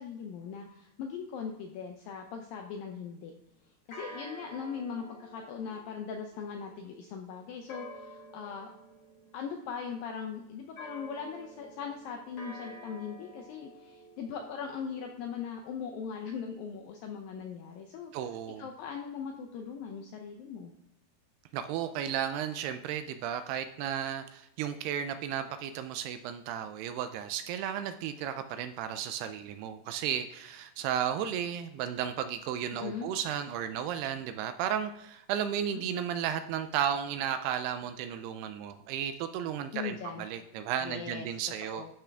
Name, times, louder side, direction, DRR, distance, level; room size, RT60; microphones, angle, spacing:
voice 1, 0.0-3.3 3.9-8.7 9.3-18.1 18.6-20.7 32.7-33.1 35.7-36.1 39.7-40.3 40.8-41.3 41.6-41.9, left 6 dB, 80° left, 3 dB, 2.0 m, -40 dB
sound 1, 2.5-3.4 3.9-10.1 10.8-15.3, right 1 dB, 65° left, 0.9 m, -50 dB
voice 2, 18.1-18.7 21.5-41.9, right 9 dB, 80° right, 10 dB, 2.4 m, -34 dB
12.5 x 5.8 x 3.4 m, 0.85 s
omnidirectional pair, 4.9 m